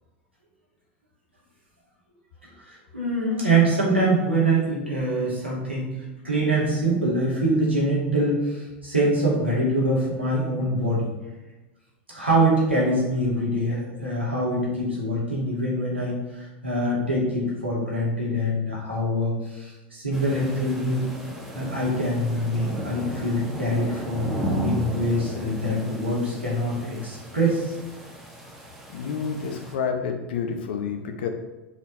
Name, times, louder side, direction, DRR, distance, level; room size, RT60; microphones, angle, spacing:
voice 1, 2.7-6.0 6.2-11.1 12.1-21.1 21.5-24.3 24.6-27.7, right 1 dB, 85° right, -6 dB, 2.4 m, -24 dB
sound 1, 20.1-29.8, equal, ahead, 1.5 m, -34 dB
voice 2, 28.9-31.3, left 6 dB, 60° left, 5 dB, 0.9 m, -29 dB
7.4 x 4.4 x 4.0 m, 1.1 s
figure-of-eight pair, 80°, 6 cm